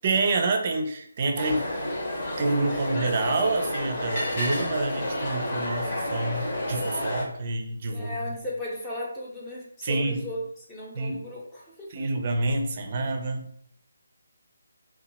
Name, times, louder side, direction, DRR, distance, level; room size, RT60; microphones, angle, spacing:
voice 1, 0.0-1.7 2.4-8.1 9.8-10.3 10.9-11.2 11.9-13.5, right 3 dB, 35° right, 4 dB, 0.5 m, -27 dB
sound 1, 1.4-7.3, left 1 dB, 40° left, 1.0 m, -30 dB
voice 2, 7.9-10.4 10.7-11.9, left 1 dB, 15° left, -5 dB, 0.9 m, -36 dB
2.8 x 2.3 x 3.9 m, 0.66 s
figure-of-eight pair, 155°, 0 cm